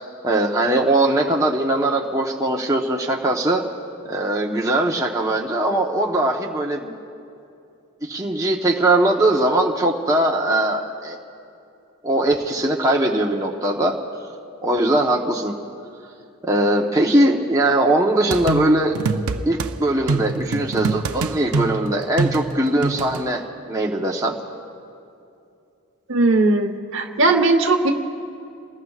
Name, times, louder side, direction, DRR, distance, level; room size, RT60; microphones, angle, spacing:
voice 1, 0.2-3.6 4.0-7.0 8.0-11.2 12.0-14.0 14.6-15.5 16.4-18.9 19.5-23.4 23.7-24.4, right 1 dB, 15° right, -1 dB, 1.0 m, -20 dB
sound 1, 18.3-19.7 20.1-23.2, right 3 dB, 80° right, 0.6 m, -25 dB
voice 2, 26.1-27.9, right 2 dB, 60° right, 5 dB, 1.1 m, -18 dB
29.5 x 20.0 x 2.4 m, 2.6 s
head